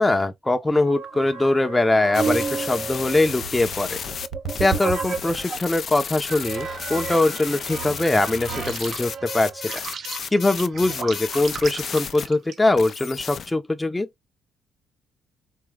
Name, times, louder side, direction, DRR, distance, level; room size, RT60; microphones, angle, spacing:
voice 1, 0.0-4.0 4.6-9.8 10.3-14.1, left 2 dB, 15° left, 0.8 m, -22 dB
sound 1, 0.8-5.7 6.3-12.9, right 5 dB, 60° right, 1.1 m, -32 dB
sound 2, 2.1-12.3 12.8-13.5, left 7 dB, 55° left, 0.5 m, -33 dB
4.6 x 2.9 x 3.7 m
cardioid pair, 90°, 0 cm